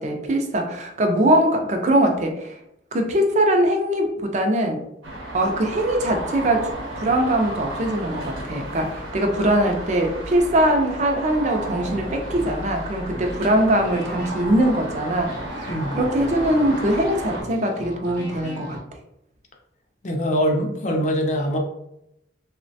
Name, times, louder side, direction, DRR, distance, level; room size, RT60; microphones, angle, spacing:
voice 1, 0.0-2.6 2.9-4.8 5.3-18.8, right 1 dB, 35° right, 3 dB, 0.4 m, -22 dB
sound 1, 5.0-17.4, right 1 dB, 85° right, 0.7 m, -33 dB
sound 2, 11.8-18.8, left 1 dB, 55° left, 0.8 m, -38 dB
voice 2, 20.0-21.6, equal, 40° left, 2 dB, 0.4 m, -23 dB
3.1 x 2.1 x 2.6 m, 0.82 s
head